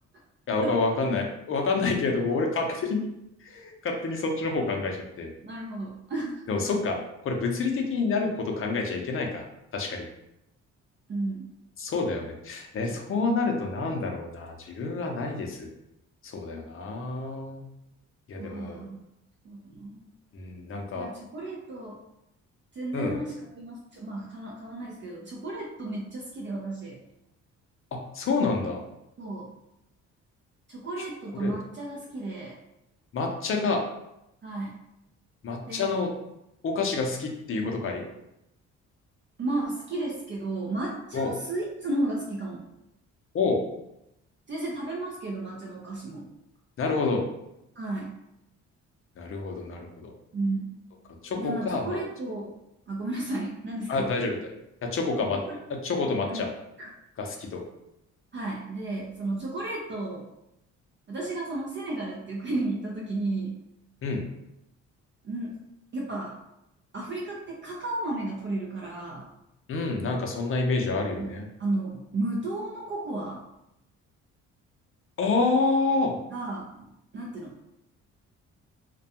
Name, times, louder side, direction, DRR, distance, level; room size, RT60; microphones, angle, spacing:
voice 1, 0.5-3.0 3.4-5.3 6.5-7.0 7.2-9.5 9.7-10.0 11.8-15.7 16.2-17.6 18.3-18.8 20.3-21.1 22.9-23.2 27.9-28.8 31.4-31.5 33.1-33.8 35.4-36.1 36.6-38.0 41.1-41.3 43.3-43.6 46.8-47.2 49.2-50.1 51.2-52.0 53.9-54.4 54.9-55.4 55.7-56.5 57.2-57.6 64.0-64.2 69.7-71.5 75.2-76.2, left 3 dB, 45° left, 2 dB, 0.5 m, -28 dB
voice 2, 5.4-6.4 11.1-11.5 12.9-13.0 18.4-19.1 19.4-20.0 20.9-22.0 22.7-27.0 29.2-29.5 30.7-32.6 34.4-34.8 35.6-36.0 39.4-42.6 44.5-46.3 47.8-48.2 50.3-50.7 51.4-52.6 52.9-54.2 55.3-55.6 56.3-56.5 56.8-56.9 58.3-60.3 61.1-63.6 65.2-65.6 65.9-66.4 66.9-69.3 71.2-73.4 76.3-76.9 77.1-77.6, right 2 dB, 40° right, -2 dB, 0.5 m, -33 dB
2.3 x 2.2 x 2.8 m, 0.85 s
cardioid pair, 90°, 30 cm